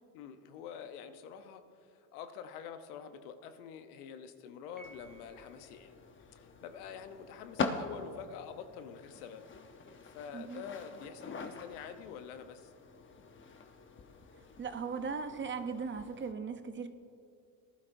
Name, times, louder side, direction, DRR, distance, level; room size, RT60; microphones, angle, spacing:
voice 1, 0.1-5.9 6.3-9.4 9.8-12.7, left 7 dB, 90° left, 8 dB, 1.0 m, -47 dB
sound 1, 4.8-16.3, left 4 dB, 25° left, 0.9 m, -44 dB
Piano, 4.8-5.9, right 1 dB, ahead, 1.1 m, -57 dB
voice 2, 10.3-10.6 14.6-16.9, right 5 dB, 25° right, 8 dB, 0.7 m, -38 dB
18.5 x 11.5 x 2.6 m, 2.5 s
supercardioid pair, 95°, 44 cm